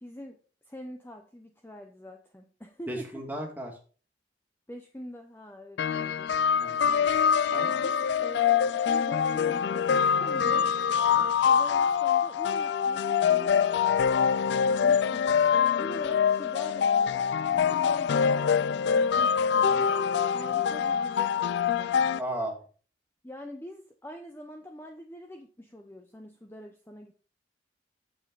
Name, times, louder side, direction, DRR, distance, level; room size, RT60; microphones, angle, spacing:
voice 1, 0.0-3.2 4.7-6.3 6.9-7.2 7.8-10.7 11.1-13.9 14.6-21.9 23.2-27.1, left 1 dB, 10° left, 4 dB, 0.7 m, -45 dB
voice 2, 2.9-3.8 6.6-6.9 7.5-7.9 11.1-11.3 14.3-14.4 17.5-17.6 22.2-22.6, right 1 dB, 10° right, 0 dB, 2.1 m, -36 dB
sound 1, 5.8-22.2, left 7 dB, 70° left, 0.4 m, -25 dB
8.7 x 7.4 x 3.9 m, 0.39 s
head